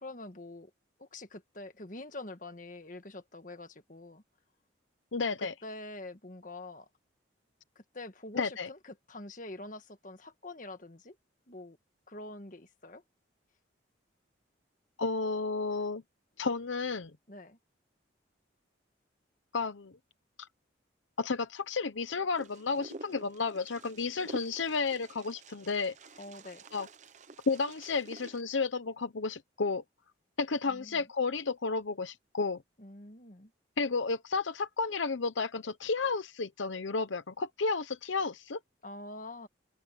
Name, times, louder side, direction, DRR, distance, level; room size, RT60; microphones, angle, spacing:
voice 1, 0.0-0.7 1.0-4.2 5.3-6.9 7.8-11.2 11.5-11.8 12.1-13.0 17.3-17.6 26.2-26.6 30.7-31.0 32.8-33.5 38.8-39.5, left 2 dB, 45° left, 1.7 m, -45 dB
voice 2, 5.1-5.5 8.3-8.7 15.0-16.0 16.4-17.1 19.5-19.9 21.2-25.9 26.7-26.9 27.5-29.8 30.4-32.6 33.8-38.6, left 4 dB, 80° left, 0.8 m, -32 dB
Wind, 22.4-28.4, right 2 dB, 40° right, 0.8 m, -50 dB
head